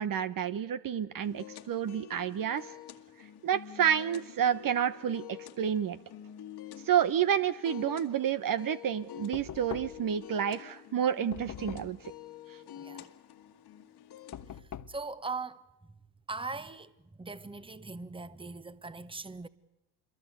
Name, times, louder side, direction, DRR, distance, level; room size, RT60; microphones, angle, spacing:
voice 1, 0.0-2.7 3.4-6.0 6.8-12.0, right 9 dB, 45° right, 1.2 m, -29 dB
sound 1, 1.2-14.6, left 10 dB, 55° left, 1.9 m, -48 dB
Knock, 9.3-10.2 11.3-12.1 14.3-15.0, left 9 dB, 40° left, 1.2 m, -43 dB
voice 2, 12.8-13.1 14.9-15.6 16.3-16.9 17.2-19.5, right 3 dB, 10° right, 1.4 m, -40 dB
27.0 x 22.5 x 8.2 m
hypercardioid pair, 65°, 47 cm